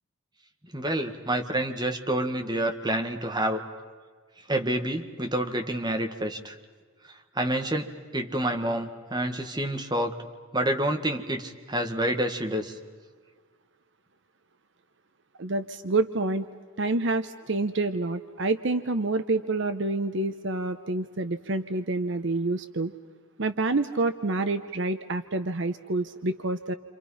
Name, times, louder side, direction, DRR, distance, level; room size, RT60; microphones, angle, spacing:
voice 1, 0.7-3.6 4.5-6.5 7.3-10.1 10.5-12.7, right 1 dB, 20° right, 4 dB, 1.6 m, -28 dB
voice 2, 15.4-16.5 16.8-22.9 23.4-26.7, right 2 dB, 55° right, 10 dB, 0.8 m, -28 dB
29.0 x 27.0 x 5.6 m, 1.5 s
head